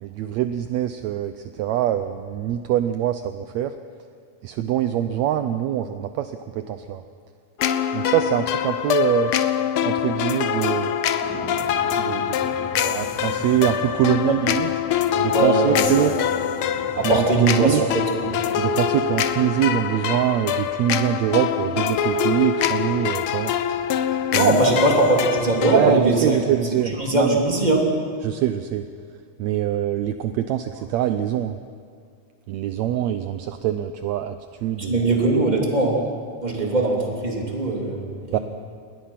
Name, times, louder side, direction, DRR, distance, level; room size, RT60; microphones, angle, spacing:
voice 1, 0.0-3.8 4.4-7.0 7.9-9.3 9.8-10.9 12.0-12.4 12.7-14.8 15.2-16.1 17.0-17.8 18.6-23.6 24.3-24.8 25.7-27.4 28.2-28.9 29.4-31.6 32.5-35.0 38.3-38.4, right 11 dB, 75° right, 9 dB, 1.8 m, -24 dB
sound 1, 7.6-26.0, left 9 dB, 70° left, 1.3 m, -24 dB
sound 2, 11.2-26.9, equal, 5° left, 5.6 m, -42 dB
voice 2, 15.3-16.1 17.0-18.3 24.3-26.4 27.0-27.8 34.8-36.0 36.4-38.4, right 2 dB, 15° right, -1 dB, 3.3 m, -21 dB
27.5 x 21.0 x 5.9 m, 2.2 s
omnidirectional pair, 3.4 m